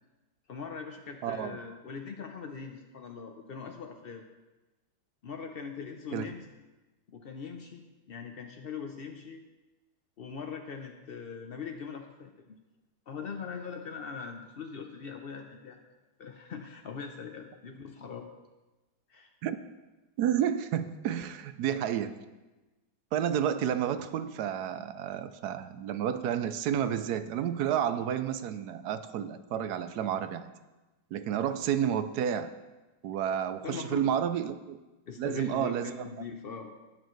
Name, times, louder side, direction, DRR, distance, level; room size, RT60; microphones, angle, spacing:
voice 1, 0.5-4.3 5.2-6.4 7.1-9.4 10.2-12.5 13.1-15.8 16.2-18.3 19.1-19.3 33.6-34.1 35.1-36.7, left 5 dB, 80° left, 4 dB, 0.5 m, -41 dB
voice 2, 1.2-1.6 6.1-6.3 19.4-19.6 20.2-22.2 23.1-30.5 31.1-32.5 33.0-34.8 35.2-36.0, right 9 dB, 70° right, 11 dB, 1.0 m, -30 dB
19.0 x 6.8 x 3.2 m, 1.1 s
omnidirectional pair, 2.0 m